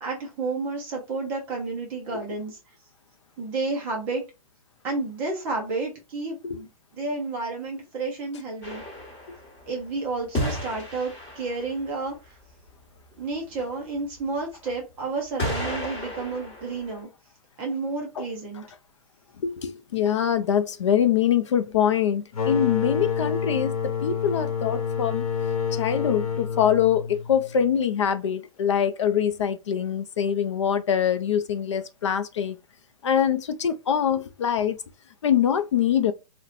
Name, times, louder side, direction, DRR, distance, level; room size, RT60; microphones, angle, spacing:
voice 1, 0.0-2.6 3.4-4.2 4.8-6.7 7.0-8.8 9.7-12.4 13.2-17.1 17.6-18.6, right 3 dB, 10° right, 0.4 m, -31 dB
sound 1, 8.6-9.8 10.3-11.9 14.2-14.3 15.4-17.0, left 1 dB, 15° left, 1.2 m, -32 dB
voice 2, 19.4-25.2 25.7-32.6 33.0-34.8 35.2-36.1, left 8 dB, 55° left, 0.4 m, -24 dB
sound 2, 22.3-27.8, left 6 dB, 85° left, 0.9 m, -28 dB
4.1 x 2.1 x 2.4 m
hypercardioid pair, 175°, 18 cm